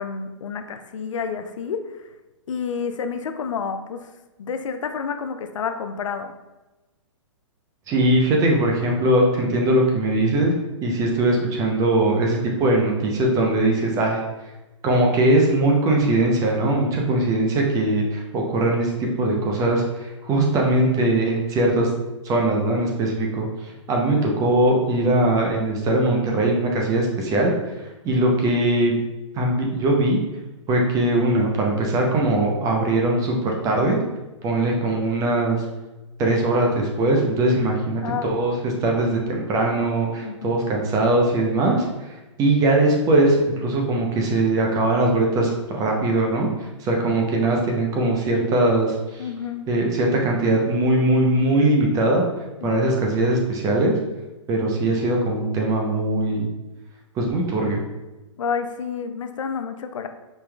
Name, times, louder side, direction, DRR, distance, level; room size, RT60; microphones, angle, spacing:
voice 1, 0.0-1.8 2.5-4.1 4.4-6.3 38.0-38.3 40.2-40.6 49.2-49.7 52.6-52.9 58.4-60.1, left 6 dB, 80° left, 8 dB, 0.4 m, -29 dB
voice 2, 7.9-10.5 10.8-14.2 14.8-21.9 22.2-23.5 23.9-27.5 28.0-29.0 29.3-30.2 30.7-34.0 34.4-35.6 36.2-41.8 42.4-46.5 46.8-49.2 49.7-52.2 52.6-53.9 54.5-56.4 57.2-57.8, right 2 dB, 20° right, 0 dB, 0.7 m, -20 dB
5.2 x 2.9 x 2.3 m, 1.1 s
hypercardioid pair, 135°, 16 cm